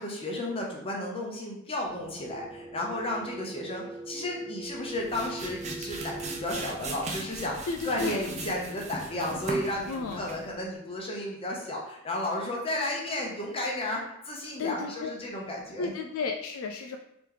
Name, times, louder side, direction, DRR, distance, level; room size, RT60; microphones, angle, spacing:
voice 1, 0.0-15.9, left 1 dB, 25° left, -2 dB, 0.8 m, -33 dB
sound 1, 1.8-6.7, right 2 dB, 15° right, 1.0 m, -41 dB
sound 2, 4.7-10.5, right 2 dB, 30° right, 0.5 m, -38 dB
voice 2, 7.7-8.2 9.9-10.2 14.6-15.1 15.8-17.0, left 4 dB, 65° left, 4 dB, 0.3 m, -33 dB
3.3 x 2.9 x 3.7 m, 0.78 s
head